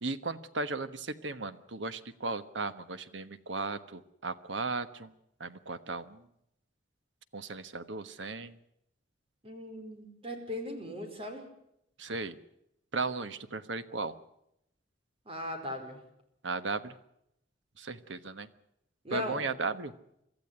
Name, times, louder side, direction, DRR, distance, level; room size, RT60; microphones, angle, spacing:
voice 1, 0.0-5.1 5.4-6.2 7.3-8.6 12.0-12.4 12.9-14.1 16.4-16.9 17.8-18.5 19.1-19.9, right 3 dB, 90° right, 12 dB, 1.3 m, -36 dB
voice 2, 9.4-11.4 15.2-16.0 19.0-19.5, left 1 dB, 30° right, 5 dB, 4.6 m, -38 dB
24.0 x 14.5 x 9.6 m, 0.79 s
head